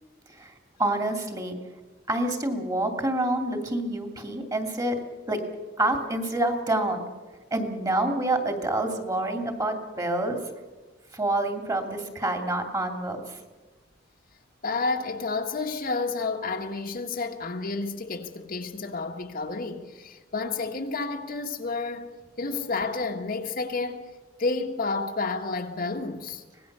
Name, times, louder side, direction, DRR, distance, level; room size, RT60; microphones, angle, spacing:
voice 1, 0.8-1.6 2.1-5.0 5.3-5.4 5.8-7.0 7.5-10.4 11.1-13.2, right 1 dB, 20° right, 2.7 m, -27 dB
voice 2, 14.6-22.1 22.4-24.1 24.4-26.4, left 3 dB, 50° left, 1.6 m, -30 dB
25.0 x 18.5 x 6.8 m
head